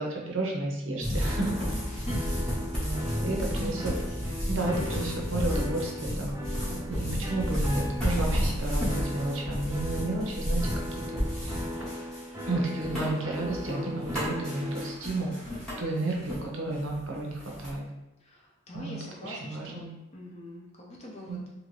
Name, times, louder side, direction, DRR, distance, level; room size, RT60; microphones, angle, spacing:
voice 1, 0.0-1.6 2.8-3.9 4.5-6.3 6.9-11.6 12.5-15.3 15.8-17.8 18.7-18.9 19.2-19.9 21.3-21.4, right 2 dB, 70° right, -1 dB, 0.7 m, -32 dB
sound 1, 1.0-16.5 16.7-17.7, equal, 5° left, 0.9 m, -32 dB
sound 2, 1.2-14.9, left 1 dB, 15° right, 0.4 m, -39 dB
voice 2, 1.7-2.7 3.1-3.5 3.8-4.2 4.7-5.6 13.4-14.0 18.2-21.5, left 1 dB, 30° left, -3 dB, 0.6 m, -44 dB
2.8 x 2.7 x 3.1 m, 0.99 s
head